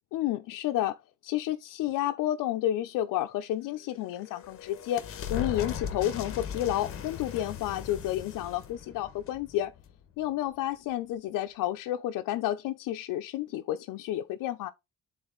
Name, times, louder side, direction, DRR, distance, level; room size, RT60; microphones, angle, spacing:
voice 1, 0.1-1.0 1.2-9.7 10.2-14.7, left 13 dB, 90° left, 0.7 m, -31 dB
sound 1, 3.8-10.3, left 8 dB, 45° left, 1.2 m, -39 dB
9.8 x 4.1 x 3.9 m
cardioid pair, 160°, 31 cm